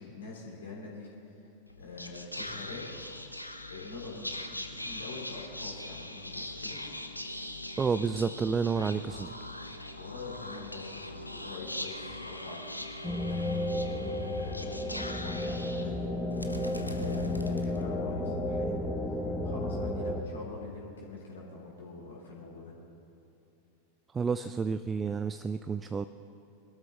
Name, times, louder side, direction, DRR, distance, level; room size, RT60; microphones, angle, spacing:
voice 1, 0.0-1.3 1.8-2.8 3.7-6.8 9.7-16.1 16.9-18.8 19.0-22.8, left 3 dB, 65° left, -3 dB, 3.2 m, -45 dB
Whispering, 1.7-18.2, left 1 dB, 85° left, 0.8 m, -41 dB
voice 2, 7.8-9.3 24.1-26.1, right 5 dB, 15° right, 11 dB, 0.4 m, -30 dB
sound 1, 13.0-20.2, left 1 dB, 10° left, 1.0 m, -32 dB
22.5 x 12.5 x 4.0 m, 2.9 s
figure-of-eight pair, 90°, 0 cm